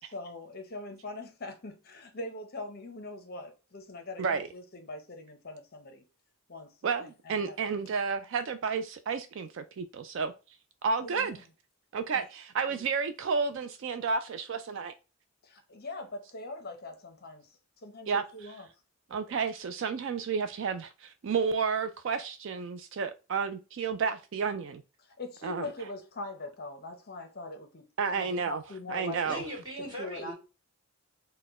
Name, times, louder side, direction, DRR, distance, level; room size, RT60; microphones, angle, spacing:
voice 1, 0.0-6.0 6.5-7.7 11.0-11.4 12.1-12.2 12.7-12.8 15.4-18.7 25.0-27.9 28.1-29.5 30.0-30.3, left 2 dB, 45° left, 0.6 m, -42 dB
voice 2, 6.8-10.3 10.8-11.4 11.9-14.9 18.1-18.2 19.1-24.8 25.4-25.7 28.0-28.6 28.9-29.4, right 5 dB, 55° right, 0.3 m, -31 dB
voice 3, 29.2-30.3, right 1 dB, 20° right, 1.9 m, -39 dB
4.1 x 2.1 x 4.1 m
head